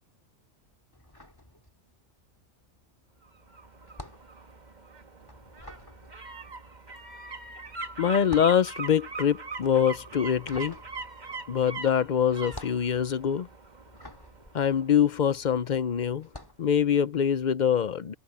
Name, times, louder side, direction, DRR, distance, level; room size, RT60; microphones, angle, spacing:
sound 1, 0.9-2.2 2.4-15.6 16.2-16.7, left 1 dB, 15° left, 2.4 m, -48 dB
sound 2, 3.2-16.1 16.4-16.5, right 3 dB, 35° right, 1.5 m, -42 dB
voice 1, 8.0-10.8 11.5-13.5 14.5-16.3 16.6-18.1, left 8 dB, 50° left, 0.5 m, -24 dB
omnidirectional pair, 1.4 m